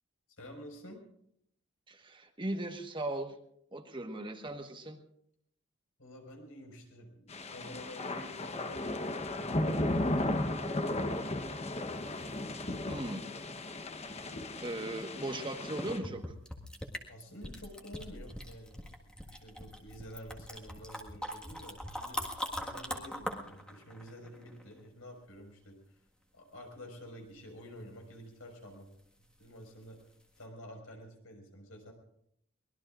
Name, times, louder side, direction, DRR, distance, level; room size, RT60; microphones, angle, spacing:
voice 1, 0.4-1.0 6.0-10.4 17.1-26.0 26.3-28.9 29.4-30.0 30.4-31.9, equal, 85° left, 3 dB, 5.2 m, -50 dB
voice 2, 1.9-3.4 3.7-5.0 12.9-13.2 14.6-16.3, right 1 dB, 25° right, 5 dB, 1.4 m, -38 dB
sound 1, 7.3-16.0, left 1 dB, 30° left, 1.0 m, -35 dB
sound 2, 12.0-12.9 15.2-15.3 15.8-24.9 29.8-30.0 30.4-30.5, equal, 5° left, 1.7 m, -42 dB
24.0 x 20.0 x 2.5 m, 0.71 s
head